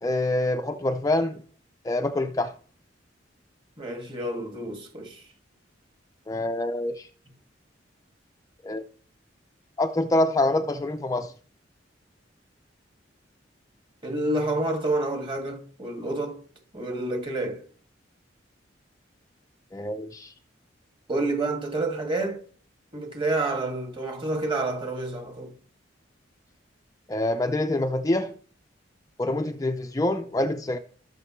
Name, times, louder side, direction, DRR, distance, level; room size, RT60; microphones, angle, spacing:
voice 1, 0.0-1.3 1.8-2.5 6.3-7.1 8.6-8.8 9.8-11.3 19.7-20.3 27.1-28.3 29.2-30.8, left 2 dB, 20° left, 0.5 m, -26 dB
voice 2, 3.8-5.2 14.0-16.4 16.7-17.6 21.1-22.4 22.9-25.5, right 2 dB, 25° right, 2.2 m, -29 dB
15.5 x 6.7 x 3.2 m
head